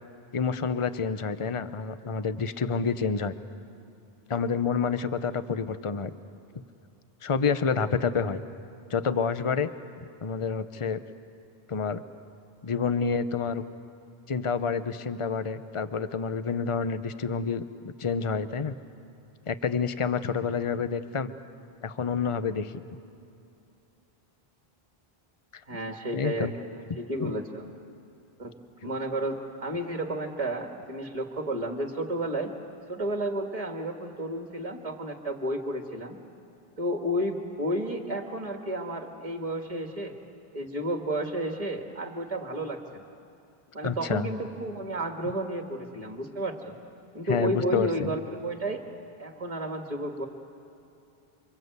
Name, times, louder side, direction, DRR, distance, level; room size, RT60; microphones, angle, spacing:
voice 1, 0.3-3.3 4.3-6.1 7.2-8.4 8.9-9.7 10.2-11.0 11.7-12.0 12.6-13.6 14.3-18.8 19.5-21.3 21.8-22.7 26.1-26.5 27.2-27.3 28.8-29.0 43.8-44.3 47.3-48.1, left 5 dB, 35° left, 11 dB, 0.8 m, -28 dB
voice 2, 25.7-26.5 27.0-27.7 28.4-32.5 32.9-36.2 36.8-40.2 40.5-43.0 43.7-46.7 47.1-48.8 49.2-50.3, right 1 dB, 35° right, 3 dB, 2.0 m, -32 dB
28.0 x 26.0 x 8.1 m, 2.7 s
omnidirectional pair, 1.0 m